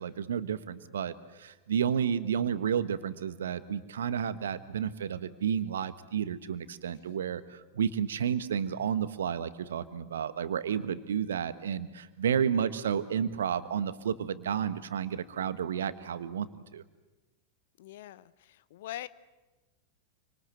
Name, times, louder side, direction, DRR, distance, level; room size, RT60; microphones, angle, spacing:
voice 1, 0.0-16.5 16.7-16.8, right 8 dB, 65° right, 13 dB, 1.5 m, -31 dB
voice 2, 17.8-19.1, left 13 dB, 55° left, 17 dB, 1.0 m, -43 dB
27.5 x 25.5 x 8.0 m, 1.1 s
figure-of-eight pair, 90°, 0 cm